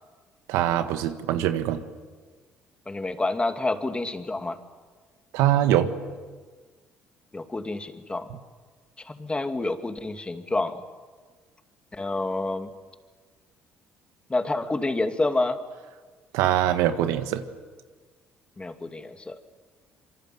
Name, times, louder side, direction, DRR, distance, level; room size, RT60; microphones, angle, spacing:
voice 1, 0.5-1.8 5.3-5.9 16.3-17.4, right 11 dB, 80° right, 9 dB, 1.5 m, -23 dB
voice 2, 2.9-4.6 7.3-8.3 9.0-10.8 12.0-12.7 14.3-15.6 18.6-19.4, left 2 dB, 20° left, 7 dB, 2.6 m, -28 dB
26.0 x 24.0 x 8.0 m, 1.5 s
hypercardioid pair, 60°, 5 cm